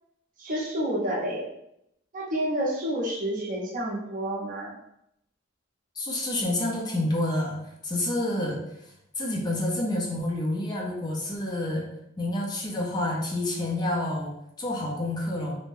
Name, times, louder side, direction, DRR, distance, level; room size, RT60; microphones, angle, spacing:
voice 1, 0.4-1.5 2.1-4.7, right 1 dB, 45° right, -2 dB, 0.6 m, -29 dB
voice 2, 6.0-8.6 9.2-11.9 12.2-14.3 14.6-15.5, left 1 dB, 20° left, -2 dB, 0.5 m, -28 dB
2.6 x 2.1 x 3.1 m, 0.79 s
head